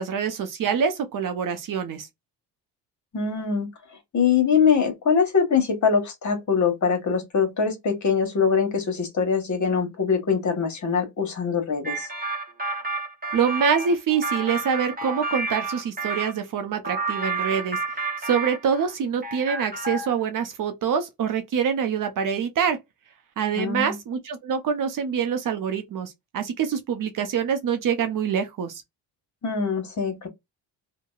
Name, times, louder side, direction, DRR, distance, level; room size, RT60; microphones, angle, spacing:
voice 1, 0.0-2.1 13.3-17.8 18.2-22.8 23.4-28.8, right 7 dB, 50° right, 0.7 m, -25 dB
voice 2, 3.1-3.7 4.1-12.1 23.6-23.9 29.4-30.3, left 6 dB, 40° left, 1.2 m, -23 dB
sound 1, 11.8-16.3 16.8-18.9 19.2-20.2, right 3 dB, 20° right, 1.0 m, -30 dB
2.8 x 2.2 x 2.3 m
supercardioid pair, 80°, 43 cm